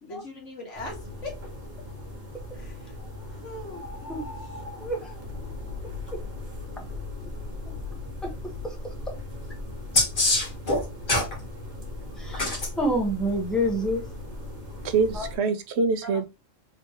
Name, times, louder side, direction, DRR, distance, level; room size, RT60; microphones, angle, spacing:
voice 1, 0.0-1.3 2.5-3.0 3.3-4.5, left 2 dB, 70° left, 2.0 m, -41 dB
sound 1, 0.7-15.4, left 2 dB, 40° right, 1.3 m, -38 dB
voice 2, 4.8-5.2 12.2-14.0 15.1-15.3 16.0-16.1, equal, ahead, 1.2 m, -27 dB
sound 2, 9.9-11.3 12.3-12.7 14.8-14.9, left 2 dB, 40° left, 1.5 m, -23 dB
voice 3, 14.8-16.3, right 4 dB, 65° right, 0.8 m, -24 dB
3.8 x 3.4 x 2.9 m
omnidirectional pair, 1.3 m